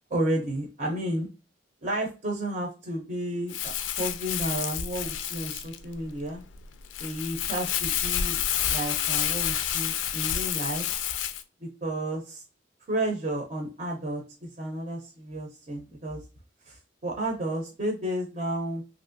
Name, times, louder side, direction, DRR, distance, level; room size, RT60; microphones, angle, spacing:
voice 1, 0.1-1.3 1.8-6.4 7.0-8.4 8.7-10.8 11.6-12.4 12.9-16.2 16.7-18.8, right 1 dB, 40° right, 0 dB, 0.6 m, -32 dB
Crumpling crinkling, 3.5-11.4, left 10 dB, 85° left, 0.3 m, -29 dB
2.9 x 2.5 x 2.5 m, 0.32 s
head